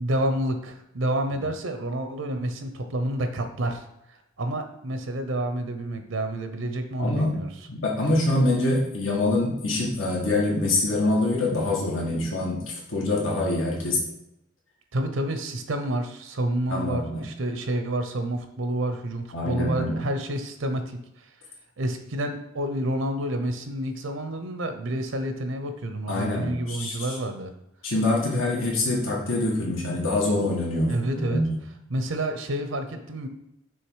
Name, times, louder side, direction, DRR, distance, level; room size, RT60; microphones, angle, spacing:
voice 1, 0.0-3.9 4.4-7.5 14.9-21.3 21.8-27.5 30.9-31.4 31.9-33.3, right 1 dB, 85° right, 7 dB, 0.7 m, -29 dB
voice 2, 7.0-7.3 7.7-12.6 12.9-14.0 16.7-17.2 19.3-19.9 26.1-27.1 27.8-31.6, left 2 dB, 80° left, -3 dB, 1.7 m, -25 dB
6.4 x 3.5 x 4.7 m, 0.84 s
head